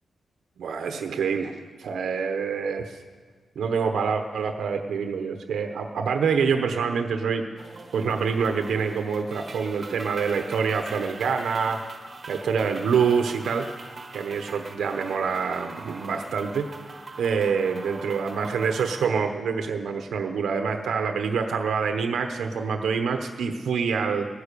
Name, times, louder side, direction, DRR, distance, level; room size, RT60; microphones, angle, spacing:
voice 1, 0.6-3.0 3.6-7.4 7.9-11.8 12.3-13.7 14.1-16.7 17.2-24.3, right 6 dB, 85° right, 5 dB, 1.0 m, -26 dB
sound 1, 7.6-19.1, right 3 dB, 30° right, 1.2 m, -42 dB
17.0 x 9.9 x 6.8 m, 1.5 s
wide cardioid pair, 175°, 0 cm